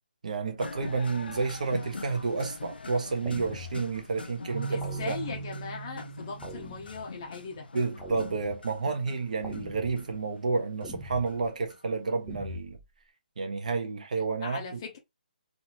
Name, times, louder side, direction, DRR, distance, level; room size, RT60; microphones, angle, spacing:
voice 1, 0.2-5.2 7.7-12.8 13.4-14.8, right 4 dB, 50° right, 1.3 m, -30 dB
sound 1, 0.6-12.4, left 4 dB, 80° left, 0.7 m, -44 dB
sound 2, 3.2-4.0 4.8-5.6 6.4-7.2 8.0-8.8 9.4-10.2 10.8-11.5 12.3-12.8, left 1 dB, ahead, 0.6 m, -43 dB
Keyboard (musical), 4.5-7.4, right 5 dB, 65° right, 0.7 m, -39 dB
voice 2, 4.7-7.7 14.2-15.0, left 5 dB, 25° left, 0.9 m, -39 dB
4.0 x 2.9 x 3.0 m
hypercardioid pair, 175°, 5 cm